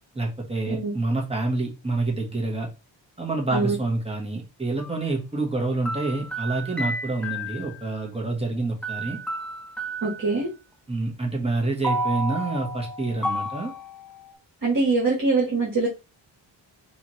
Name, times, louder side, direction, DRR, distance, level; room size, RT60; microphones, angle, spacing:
voice 1, 0.1-2.7 3.2-9.2 10.9-13.7, right 2 dB, 15° right, -1 dB, 1.4 m, -27 dB
voice 2, 0.7-1.0 3.5-3.8 10.0-10.5 14.6-15.9, right 3 dB, 45° right, -4 dB, 1.7 m, -23 dB
sound 1, 4.8-5.0 5.9-7.8 8.8-10.4 11.8-14.3, right 1 dB, ahead, 0.8 m, -31 dB
4.3 x 3.5 x 3.1 m, 0.28 s
wide cardioid pair, 115°, 47 cm